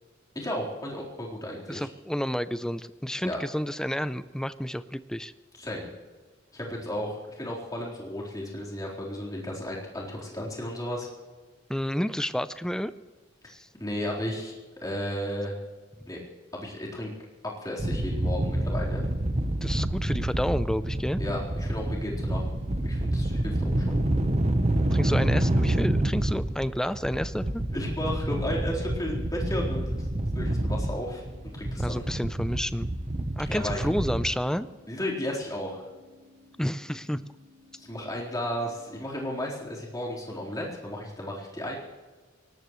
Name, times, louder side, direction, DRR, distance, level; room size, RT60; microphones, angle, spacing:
voice 1, 0.3-1.9 3.2-3.4 5.6-5.9 6.5-11.1 13.8-14.5 14.8-15.5 16.1-16.2 16.5-17.1 17.6-19.0 21.2-22.4 22.8-24.0 27.7-29.9 30.3-31.2 31.5-32.0 33.5-33.8 34.9-35.9 37.7-41.7, left 1 dB, 20° left, -4 dB, 4.1 m, -34 dB
voice 2, 1.7-5.3 11.7-12.9 13.5-13.7 16.0-16.1 19.6-21.2 24.9-27.6 31.8-32.9 33.4-34.7 36.6-37.2, equal, 5° left, 13 dB, 0.5 m, -30 dB
sound 1, 17.8-34.3, right 1 dB, 35° right, 1.0 m, -28 dB
sound 2, 29.6-39.6, left 2 dB, 85° right, 7.0 m, -57 dB
23.0 x 19.0 x 3.2 m, 1.3 s
head